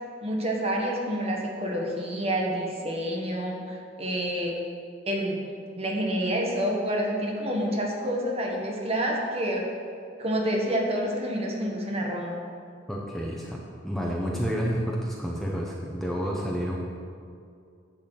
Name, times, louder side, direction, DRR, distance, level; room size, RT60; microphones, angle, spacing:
voice 1, 0.2-4.6 5.1-5.5 5.8-9.7 10.2-12.4, equal, 30° right, -1 dB, 1.4 m, -28 dB
voice 2, 12.9-16.8, equal, ahead, -3 dB, 0.9 m, -30 dB
10.5 x 4.3 x 7.8 m, 2.3 s
head